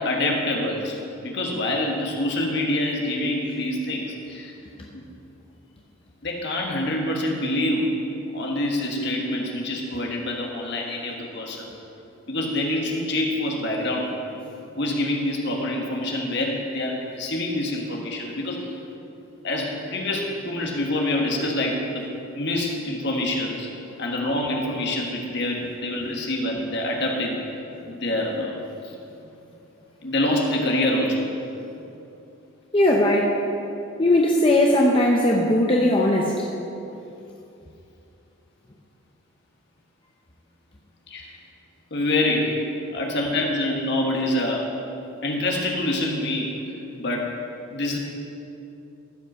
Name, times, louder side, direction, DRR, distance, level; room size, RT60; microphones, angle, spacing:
voice 1, 0.0-4.5 4.9-5.1 6.2-8.0 8.3-11.7 12.3-14.1 14.8-18.7 19.4-22.1 22.3-23.7 24.0-27.4 27.8-28.6 28.8-28.9 30.0-31.2 41.1-41.3 41.9-42.6 42.9-44.7 45.2-46.6 47.0-47.3 47.7-48.0, left 1 dB, 50° left, 0 dB, 1.5 m, -26 dB
voice 2, 32.7-33.4 34.0-36.5, left 1 dB, 25° left, -1 dB, 0.7 m, -19 dB
14.5 x 5.5 x 6.2 m, 2.8 s
head